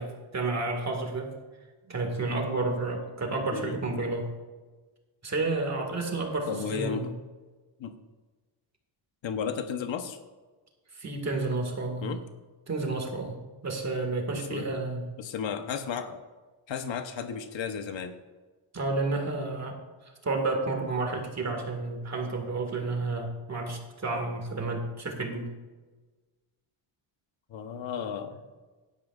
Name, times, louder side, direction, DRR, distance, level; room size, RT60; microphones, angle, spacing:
voice 1, 0.0-1.3 1.9-4.3 5.2-7.1 10.9-12.2 12.7-13.4 13.6-15.0 18.7-19.8 20.0-25.5, right 3 dB, 30° right, 2 dB, 1.9 m, -31 dB
voice 2, 3.5-3.8 6.5-7.1 7.8-8.0 9.2-10.2 12.0-12.2 14.5-14.8 15.2-16.2 16.7-18.2 27.5-28.4, left 7 dB, 65° left, 7 dB, 1.0 m, -34 dB
16.5 x 11.5 x 2.4 m, 1.3 s
wide cardioid pair, 165°, 50 cm